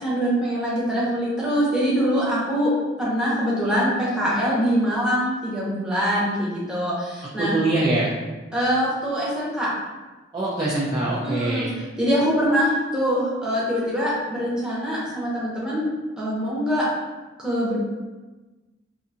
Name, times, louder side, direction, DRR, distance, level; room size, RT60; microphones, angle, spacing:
voice 1, 0.0-2.7 3.0-7.5 8.5-9.7 11.2-11.7 12.0-15.9 16.2-16.8 17.4-17.8, equal, 5° right, -8 dB, 0.7 m, -23 dB
voice 2, 7.4-8.1 10.3-11.8, right 2 dB, 20° right, -8 dB, 0.4 m, -23 dB
2.6 x 2.4 x 2.7 m, 1.2 s
head